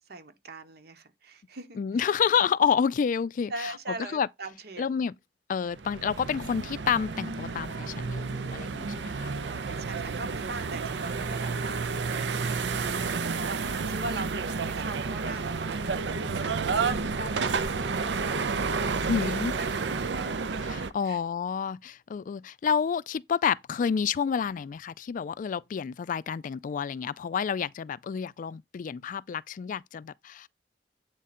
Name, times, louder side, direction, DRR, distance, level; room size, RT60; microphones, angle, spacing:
voice 1, 0.0-1.8 2.1-2.2 3.5-5.1 9.5-19.3 19.6-20.7 21.0-21.2, right 2 dB, 65° right, 1.2 m, -41 dB
voice 2, 1.8-3.7 4.1-4.3 4.8-5.1 5.5-9.3 19.1-19.5 20.6-30.5, left 7 dB, 50° left, 0.3 m, -29 dB
sound 1, 5.7-20.9, right 4 dB, 85° right, 0.6 m, -31 dB
8.1 x 3.8 x 4.2 m
head